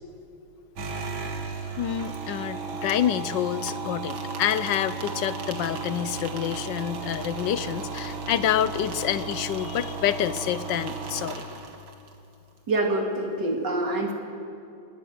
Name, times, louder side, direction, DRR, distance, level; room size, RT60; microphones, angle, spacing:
sound 1, 0.8-12.1, right 4 dB, 80° right, 2.6 m, -34 dB
voice 1, 1.8-11.4, left 10 dB, 70° left, 14 dB, 1.3 m, -27 dB
voice 2, 12.7-14.1, right 2 dB, 60° right, 1 dB, 3.4 m, -26 dB
26.5 x 20.0 x 6.5 m, 2.7 s
omnidirectional pair, 2.2 m